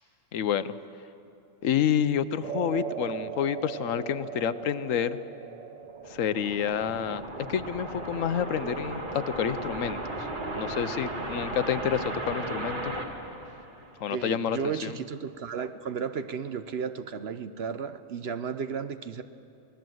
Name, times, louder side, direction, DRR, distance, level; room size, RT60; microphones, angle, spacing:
voice 1, 0.3-0.7 1.6-5.2 6.1-7.2 7.5-10.3 10.6-12.9 14.0-14.9, left 9 dB, 75° left, 13 dB, 1.1 m, -29 dB
sound 1, 2.4-10.8, right 7 dB, 75° right, 1.3 m, -40 dB
sound 2, 5.8-14.2, right 1 dB, 35° right, 2.0 m, -36 dB
voice 2, 14.1-19.2, right 6 dB, 55° right, 11 dB, 0.9 m, -34 dB
28.0 x 19.0 x 7.8 m, 2.7 s
omnidirectional pair, 1.4 m